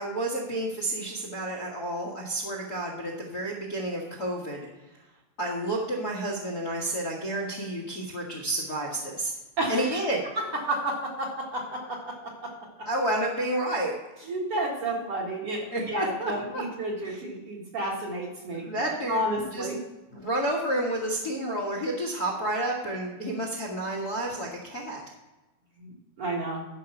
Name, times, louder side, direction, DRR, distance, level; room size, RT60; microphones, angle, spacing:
voice 1, 0.0-4.7 5.4-9.3 9.7-10.2 12.8-13.9 15.7-16.6 17.1-17.2 18.5-19.2 19.5-19.7 20.2-25.0, right 1 dB, 45° left, 0 dB, 1.3 m, -30 dB
voice 2, 9.6-10.0 10.3-12.9 14.2-19.8 20.1-20.2 25.8-26.7, right 1 dB, 50° right, -2 dB, 2.3 m, -32 dB
12.5 x 5.5 x 5.8 m, 1.1 s
omnidirectional pair, 3.9 m